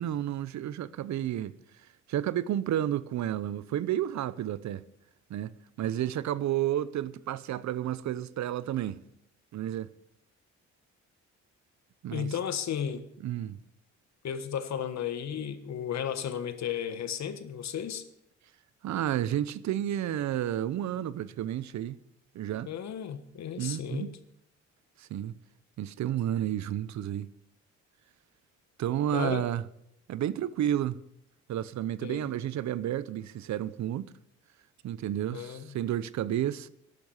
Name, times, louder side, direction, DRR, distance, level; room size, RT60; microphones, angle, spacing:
voice 1, 0.0-1.6 2.1-4.8 5.3-5.5 5.8-9.0 9.5-9.9 12.0-12.3 13.2-13.6 18.8-22.0 22.3-22.7 23.6-24.1 25.0-25.3 25.8-27.3 28.8-29.6 30.1-31.0 31.5-34.1 34.8-36.7, right 11 dB, 65° right, 0.8 m, -31 dB
voice 2, 12.1-13.0 14.2-18.0 22.7-24.1 29.1-29.4 32.0-32.2 35.3-35.7, left 8 dB, 60° left, 1.4 m, -34 dB
12.0 x 11.0 x 7.1 m
cardioid pair, 90°, 30 cm